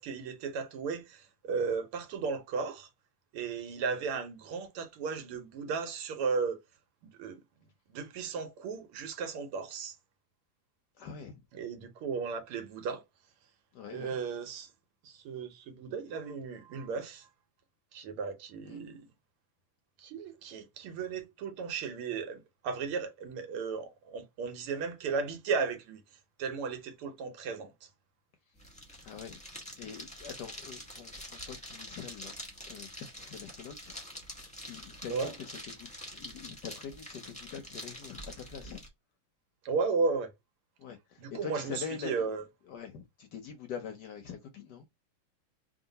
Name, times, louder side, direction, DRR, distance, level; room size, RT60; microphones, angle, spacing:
voice 1, 0.0-2.9 3.3-6.6 7.0-7.4 7.9-10.0 11.5-13.0 13.9-14.7 15.0-17.3 17.9-19.1 20.0-26.0 26.4-27.9 35.1-35.4 39.6-40.3 41.2-42.4, right 5 dB, 85° right, 1.8 m, -35 dB
voice 2, 11.0-11.4 13.7-14.2 18.6-18.8 29.0-32.3 32.7-34.0 34.2-38.8 40.8-42.3 42.7-44.9, left 7 dB, 70° left, 1.0 m, -44 dB
sound 1, 28.6-38.9, equal, 5° left, 0.9 m, -46 dB
3.7 x 2.5 x 3.9 m
omnidirectional pair, 2.4 m